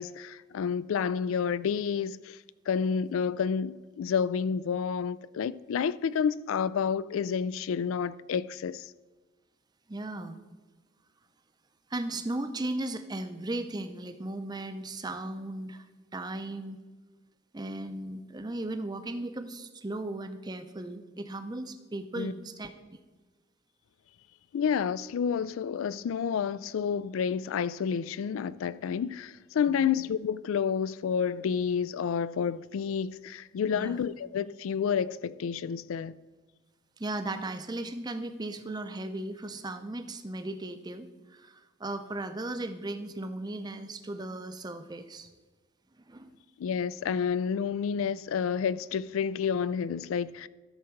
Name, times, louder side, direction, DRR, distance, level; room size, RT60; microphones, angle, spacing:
voice 1, 0.0-2.4 2.7-8.9 22.2-22.3 24.5-36.1 46.6-50.5, left 7 dB, 75° left, 0.3 m, -30 dB
voice 2, 9.9-10.4 11.9-15.9 16.1-16.8 17.5-22.7 29.7-29.9 33.7-34.0 37.0-45.3 46.1-46.3, right 2 dB, 20° right, 0.5 m, -36 dB
13.0 x 6.4 x 4.5 m
head